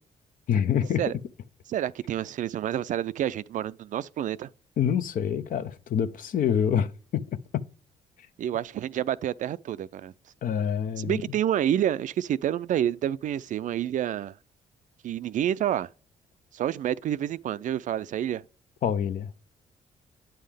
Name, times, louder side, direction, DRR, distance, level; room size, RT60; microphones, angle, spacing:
voice 1, 0.5-1.0 4.8-7.2 7.5-7.6 10.4-11.2 18.8-19.3, left 8 dB, 60° left, 0.6 m, -26 dB
voice 2, 1.7-4.5 8.4-10.1 11.0-14.3 15.0-15.9 16.5-18.4, right 11 dB, 55° right, 0.4 m, -28 dB
8.8 x 5.5 x 3.4 m
hypercardioid pair, 55°, 16 cm